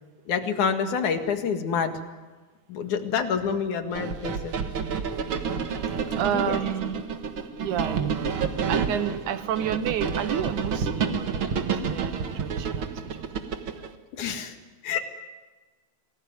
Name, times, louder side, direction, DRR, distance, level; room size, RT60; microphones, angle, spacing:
voice 1, 0.3-1.9 2.7-4.6 6.3-6.6 14.2-14.6 14.8-15.0, left 6 dB, 80° left, 6 dB, 3.3 m, -27 dB
sound 1, 3.9-13.9, right 6 dB, 50° right, 1.9 m, -29 dB
voice 2, 5.8-7.0 7.3-13.3 13.8-13.9, right 9 dB, 80° right, 10 dB, 2.6 m, -31 dB
27.5 x 20.0 x 9.6 m, 1.3 s
omnidirectional pair, 3.4 m